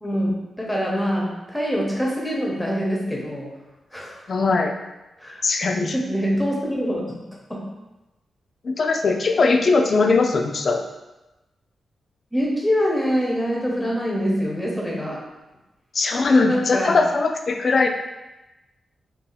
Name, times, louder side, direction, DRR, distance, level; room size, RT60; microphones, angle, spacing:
voice 1, 0.6-3.6 3.9-4.2 5.2-5.4 5.9-7.7 12.3-15.3 16.2-17.0, equal, 5° left, -3 dB, 0.8 m, -25 dB
voice 2, 4.3-4.7 5.4-6.0 8.6-10.8 15.9-17.9, left 4 dB, 50° left, 4 dB, 0.3 m, -20 dB
2.7 x 2.4 x 3.8 m, 1.0 s
cardioid pair, 100°, 0 cm